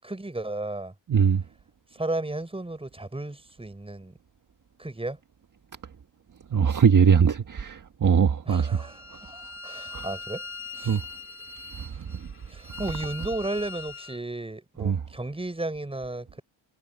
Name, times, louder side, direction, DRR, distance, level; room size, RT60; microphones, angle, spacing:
voice 1, 0.0-0.9 1.9-4.1 4.8-5.2 8.5-10.4 10.8-11.0 12.5-16.4, right 2 dB, 10° right, 5.9 m, -34 dB
voice 2, 1.1-1.4 6.5-8.9 9.9-10.0 10.8-11.0 14.8-15.0, right 7 dB, 40° right, 1.6 m, -21 dB
Bowed string instrument, 8.8-14.2, left 4 dB, 25° left, 2.3 m, -41 dB
cardioid pair, 105°, 47 cm